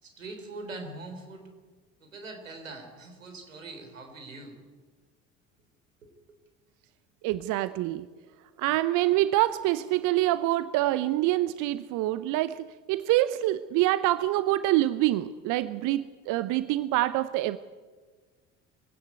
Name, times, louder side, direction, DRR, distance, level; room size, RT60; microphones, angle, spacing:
voice 1, 0.0-1.5 2.0-4.6 6.0-6.1, right 2 dB, 85° right, 5 dB, 3.6 m, -42 dB
voice 2, 7.2-8.1 8.6-17.6, right 15 dB, 55° right, 15 dB, 0.8 m, -26 dB
23.5 x 17.0 x 9.5 m, 1.4 s
figure-of-eight pair, 60°, 38 cm